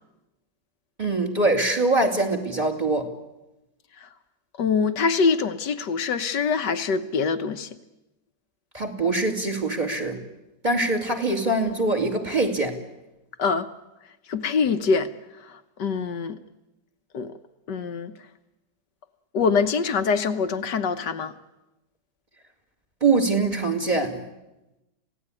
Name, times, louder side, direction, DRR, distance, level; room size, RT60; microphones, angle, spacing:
voice 1, 1.0-3.1 8.7-10.2 10.6-12.8 23.0-24.2, right 2 dB, 20° right, 2.6 m, -23 dB
voice 2, 4.6-7.7 13.4-13.7 14.3-15.1 15.5-16.4 17.1-17.3 17.7-18.1 19.3-21.3, left 5 dB, 65° left, 1.6 m, -24 dB
26.5 x 17.0 x 9.8 m
omnidirectional pair, 2.1 m